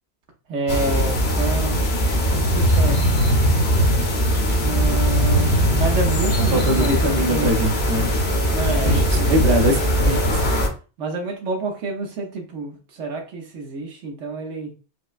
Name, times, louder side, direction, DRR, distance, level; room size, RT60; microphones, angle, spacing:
voice 1, 0.5-1.9 2.3-3.0 4.6-7.5 8.5-9.3 11.0-14.7, right 3 dB, 80° right, 2 dB, 1.1 m, -28 dB
sound 1, 0.7-10.7, equal, 45° left, 0.8 m, -20 dB
voice 2, 6.5-8.1 8.8-10.4, equal, 55° right, 1 dB, 0.9 m, -22 dB
4.6 x 2.1 x 2.4 m, 0.34 s
omnidirectional pair, 1.2 m